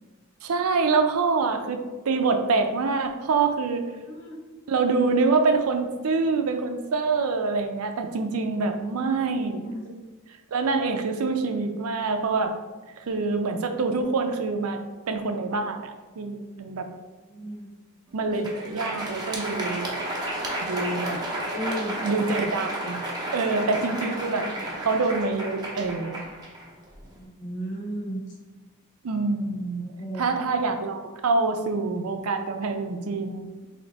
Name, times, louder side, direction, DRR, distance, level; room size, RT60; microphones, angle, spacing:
voice 1, 0.4-3.8 4.7-9.7 10.5-12.5 13.0-14.8 15.1-16.9 18.1-19.9 20.6-21.2 22.0-23.0 23.3-24.5 24.8-26.2 29.0-29.9 30.1-33.6, right 4 dB, 80° right, 6 dB, 0.5 m, -26 dB
voice 2, 4.1-4.4 9.0-9.3 9.7-9.8 17.3-17.7 21.4-21.9 27.2-28.2 30.0-30.3, right 1 dB, 55° left, -3 dB, 1.1 m, -34 dB
Crowd, 18.2-27.2, right 1 dB, 20° right, 0.7 m, -32 dB
3.3 x 2.8 x 4.0 m, 1.3 s
head